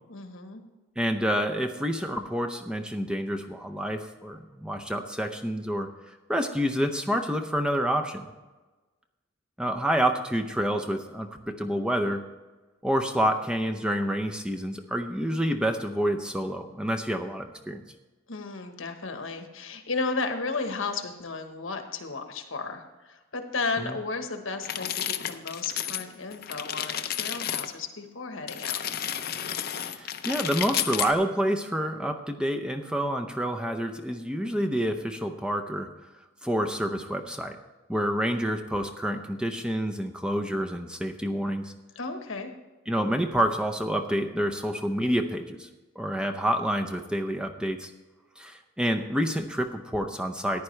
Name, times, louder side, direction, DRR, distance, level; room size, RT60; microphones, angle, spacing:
voice 1, 0.1-0.6 18.3-28.8 41.9-42.5, left 4 dB, 70° left, 6 dB, 1.2 m, -34 dB
voice 2, 1.0-5.9 6.3-8.3 9.6-12.2 12.8-17.8 23.8-23.9 29.9-35.9 36.4-37.6 37.9-41.7 42.9-45.7 46.0-47.9 48.4-50.6, equal, 5° right, 4 dB, 0.6 m, -28 dB
sound 1, 24.6-26.1 26.3-27.7 28.5-31.1, left 10 dB, 50° left, 0.6 m, -31 dB
14.0 x 10.5 x 3.3 m, 1.2 s
head